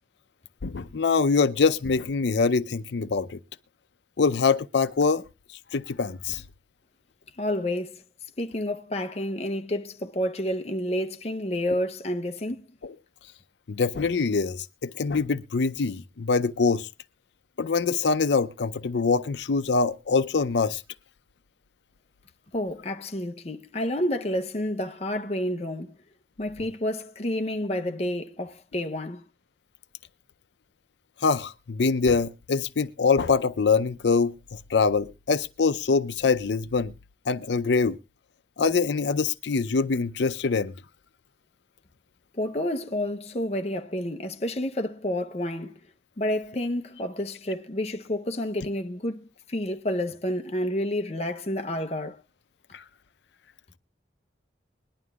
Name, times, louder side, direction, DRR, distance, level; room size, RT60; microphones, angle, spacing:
voice 1, 0.6-3.4 4.2-5.2 5.7-6.4 12.8-12.9 13.7-16.9 17.6-20.8 31.2-36.9 37.3-38.0 38.6-40.7 52.7-52.8, left 4 dB, 80° left, 0.5 m, -24 dB
voice 2, 7.4-8.0 8.4-12.6 22.5-26.0 26.4-29.2 42.3-45.9 46.2-52.2, left 1 dB, 35° left, 0.7 m, -29 dB
21.5 x 11.0 x 2.3 m
head